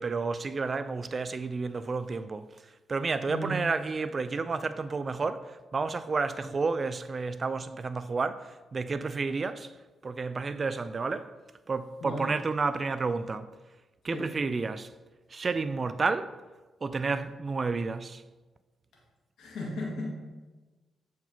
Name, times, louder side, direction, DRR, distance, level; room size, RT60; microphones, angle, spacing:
voice 1, 0.0-9.7 10.0-11.3 11.7-13.5 14.0-14.9 15.3-16.3 16.8-18.2, right 4 dB, 45° right, 0.3 m, -31 dB
voice 2, 19.4-20.1, left 1 dB, 75° left, 1.8 m, -35 dB
7.6 x 4.6 x 2.8 m
supercardioid pair, 55°, 0 cm